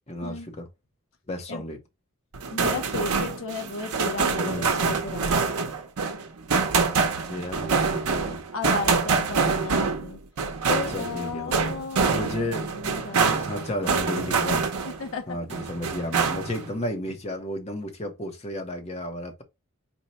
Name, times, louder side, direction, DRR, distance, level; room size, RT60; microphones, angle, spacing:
voice 1, 0.1-0.7 1.3-1.8 4.4-4.9 7.3-8.4 9.4-9.7 10.7-11.6 12.1-12.7 13.1-14.7 15.3-19.4, left 1 dB, 30° left, 0.7 m, -33 dB
sound 1, 2.3-15.1 15.5-16.7, right 4 dB, 85° right, 0.7 m, -25 dB
voice 2, 2.5-5.4 8.5-10.2 10.7-14.1 14.3-14.6 15.0-15.4, left 3 dB, 65° left, 0.7 m, -35 dB
4.4 x 2.1 x 4.0 m
head